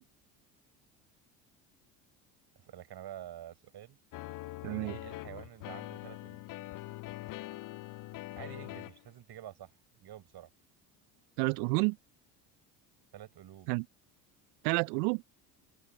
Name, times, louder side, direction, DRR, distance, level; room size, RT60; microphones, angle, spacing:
voice 1, 2.6-4.0 4.6-6.4 8.3-9.8 10.0-10.5 13.1-13.7, right 12 dB, 50° right, 6.8 m, -48 dB
sound 1, 4.1-9.1, left 18 dB, 45° left, 0.5 m, -43 dB
voice 2, 4.6-4.9 11.4-12.0 13.7-13.8 14.6-15.2, right 31 dB, 70° right, 0.6 m, -29 dB
open air
hypercardioid pair, 70°, 49 cm